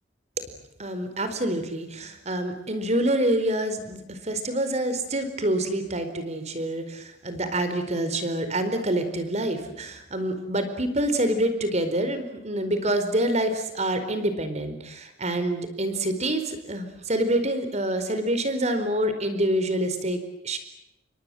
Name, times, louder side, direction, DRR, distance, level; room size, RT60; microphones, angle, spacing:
voice 1, 0.8-20.6, right 1 dB, 40° right, 9 dB, 4.5 m, -27 dB
29.5 x 24.0 x 7.8 m, 0.89 s
head